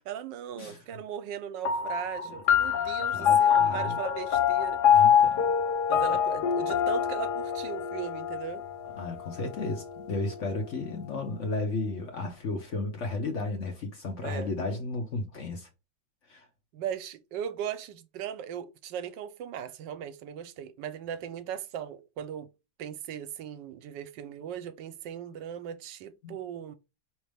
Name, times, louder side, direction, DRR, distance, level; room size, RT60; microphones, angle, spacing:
voice 1, 0.0-4.8 5.9-8.6 10.5-10.6 14.2-14.5 16.7-22.5 22.8-26.8, right 9 dB, 85° right, 1.3 m, -38 dB
sound 1, 1.7-10.5, left 8 dB, 70° left, 1.3 m, -25 dB
voice 2, 3.0-4.0 4.9-5.4 6.1-6.2 9.0-15.7 16.3-16.5 26.2-26.4, left 3 dB, 50° left, 1.0 m, -34 dB
5.0 x 3.1 x 3.3 m
omnidirectional pair, 1.9 m